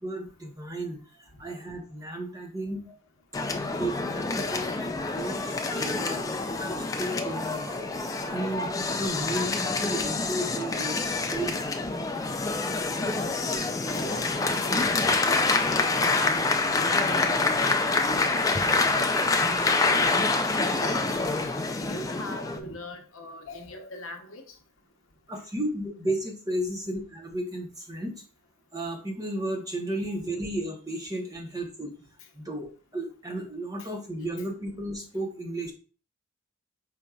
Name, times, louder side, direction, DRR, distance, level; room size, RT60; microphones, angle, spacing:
voice 1, 0.0-3.0 3.7-6.2 6.5-11.6 12.0-12.1 25.3-28.1 28.7-31.9 32.3-35.7, right 1 dB, 15° right, 0.9 m, -34 dB
sound 1, 3.3-22.6, left 3 dB, 15° left, 0.3 m, -26 dB
voice 2, 13.0-13.6 13.9-14.8 15.1-17.3 17.6-17.9 18.4-19.1 19.5-21.1 21.8-24.5 25.3-25.4, left 1 dB, 70° left, 0.9 m, -42 dB
5.1 x 4.4 x 2.3 m
head